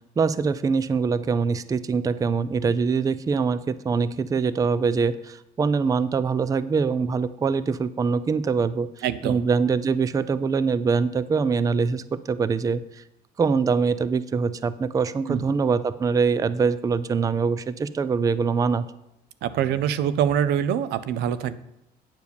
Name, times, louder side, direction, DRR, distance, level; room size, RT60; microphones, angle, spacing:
voice 1, 0.2-13.0 13.4-18.9, right 5 dB, 20° right, 16 dB, 0.4 m, -24 dB
voice 2, 9.0-9.4 15.3-15.4 19.4-21.5, right 9 dB, 80° right, 15 dB, 0.6 m, -24 dB
9.3 x 4.7 x 6.9 m, 0.83 s
cardioid pair, 110°, 17 cm